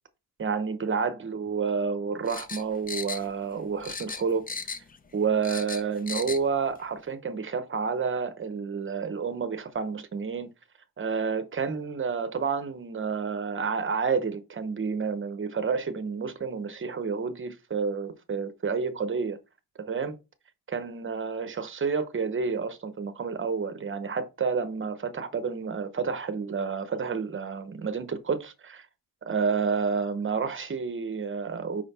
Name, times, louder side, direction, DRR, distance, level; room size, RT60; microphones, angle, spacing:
voice 1, 0.4-4.4 5.1-10.5 11.0-19.4 19.8-20.2 20.7-28.9 29.2-31.8, right 5 dB, 30° right, 0.9 m, -30 dB
sound 1, 2.3-3.6 3.8-5.0 5.2-6.4 6.8-6.9, left 5 dB, 25° left, 0.5 m, -36 dB
5.6 x 5.1 x 4.1 m
wide cardioid pair, 170°, 38 cm